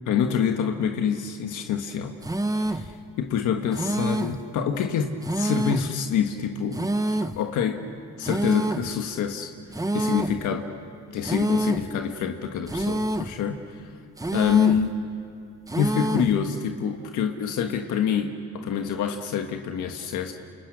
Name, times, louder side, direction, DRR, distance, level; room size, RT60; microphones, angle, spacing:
voice 1, 0.1-2.2 2.6-6.8 7.3-7.8 8.2-9.5 9.9-10.7 11.1-13.9 14.3-14.9 15.7-20.3, left 8 dB, 80° left, 4 dB, 1.5 m, -26 dB
sound 1, 2.2-2.9 3.7-4.4 5.2-5.9 6.7-7.4 8.2-8.9 9.7-10.4 11.2-11.9 12.7-13.4 14.2-14.9 15.7-16.4, right 1 dB, 10° right, 1.2 m, -27 dB
29.5 x 28.5 x 6.3 m, 2.7 s
cardioid pair, 90°, 30 cm